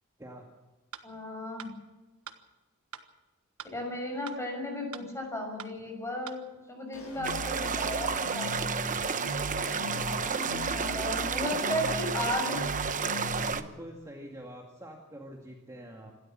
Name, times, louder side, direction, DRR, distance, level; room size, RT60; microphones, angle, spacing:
sound 1, 0.9-1.1 1.6-1.7 2.3-2.4 2.9-3.1 3.6-3.7 4.3-4.4 4.9-5.1 5.6-5.7 6.3-6.4, right 7 dB, 75° right, 1.4 m, -43 dB
voice 1, 1.0-1.7 3.7-6.4 6.7-8.6 9.8-12.6, left 1 dB, 15° left, 3 dB, 6.4 m, -35 dB
sound 2, 6.9-13.5, left 2 dB, 80° left, 6.0 m, -38 dB
sound 3, 7.2-13.6, right 6 dB, 35° right, 1.0 m, -31 dB
voice 2, 13.4-16.1, equal, 15° right, 0 dB, 2.0 m, -45 dB
27.0 x 13.0 x 7.5 m, 1.1 s
head